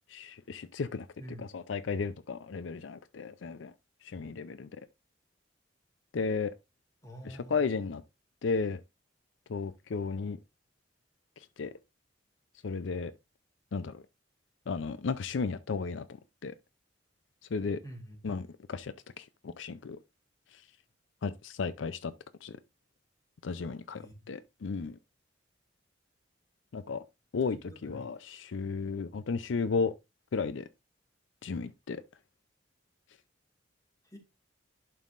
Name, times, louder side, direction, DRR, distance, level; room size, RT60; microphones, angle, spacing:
voice 1, 0.1-1.1 1.4-3.7 4.0-4.7 6.1-6.5 7.2-8.0 8.4-8.8 9.5-10.4 11.6-11.7 12.6-13.1 13.7-14.0 14.7-16.1 16.4-16.5 17.5-17.8 18.2-20.0 21.2-22.1 22.4-22.6 23.4-25.0 26.7-27.0 27.3-29.9 30.3-30.7 31.4-32.0, left 4 dB, 80° left, 0.5 m, -34 dB
voice 2, 1.2-1.6 7.0-7.6 17.8-18.2 23.9-24.3 27.7-28.1 34.1-34.2, equal, 20° left, 2.3 m, -46 dB
11.0 x 5.5 x 2.5 m
head